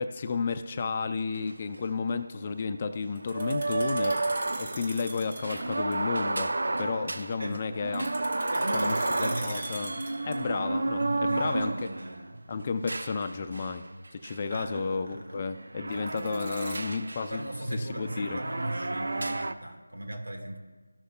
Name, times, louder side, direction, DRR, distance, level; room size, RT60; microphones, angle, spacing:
voice 1, 0.0-4.2 4.6-8.2 8.7-9.9 10.3-11.7 12.5-13.8 14.2-17.4 17.8-18.4, left 4 dB, 25° left, 7 dB, 0.3 m, -32 dB
sound 1, 1.1-1.2 1.3-1.4 3.3-12.2 12.9-13.7 14.2-17.4 17.8-19.5, right 2 dB, 65° right, 0.4 m, -32 dB
sound 2, 3.2-5.7 5.9-6.0 7.9-10.6 15.9-16.8, right 1 dB, 30° right, 2.1 m, -41 dB
voice 2, 7.4-8.0 8.5-10.0 11.0-12.4 14.5-15.4 17.3-20.6, right 1 dB, 80° right, 2 dB, 1.6 m, -37 dB
15.0 x 6.4 x 2.2 m, 1.3 s
figure-of-eight pair, 170°, 0 cm